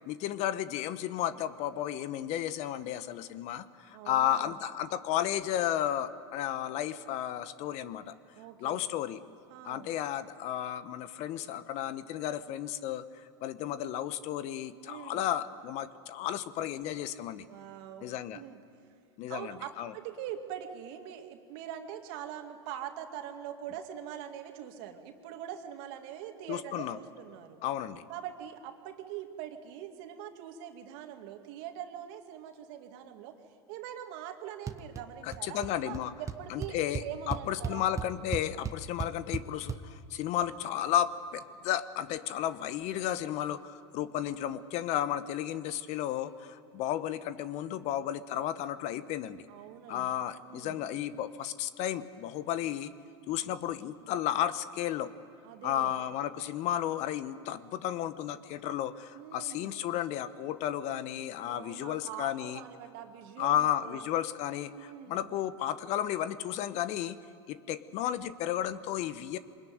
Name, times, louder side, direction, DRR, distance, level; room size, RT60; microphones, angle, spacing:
voice 1, 0.1-8.1 8.6-9.2 9.6-17.4 18.0-18.4 19.2-19.9 26.5-27.0 27.6-28.0 35.2-36.1 36.5-49.4 49.9-52.9 53.3-55.1 55.6-62.6 63.4-67.2 67.5-69.4, left 11 dB, 55° left, 14 dB, 1.1 m, -33 dB
voice 2, 3.9-4.6 8.3-8.9 9.5-9.9 14.8-15.2 17.5-18.6 19.3-27.6 28.1-33.3 33.7-37.9 49.5-50.1 50.4-50.8 55.4-55.9 59.1-59.7 61.4-64.0 64.8-65.3, right 10 dB, 65° right, 5 dB, 2.3 m, -43 dB
sound 1, 34.7-35.0 35.3-35.7 35.9-36.0 36.3-39.8, right 6 dB, 20° right, 1.2 m, -35 dB
23.5 x 20.5 x 9.5 m, 2.3 s
hypercardioid pair, 95°, 14 cm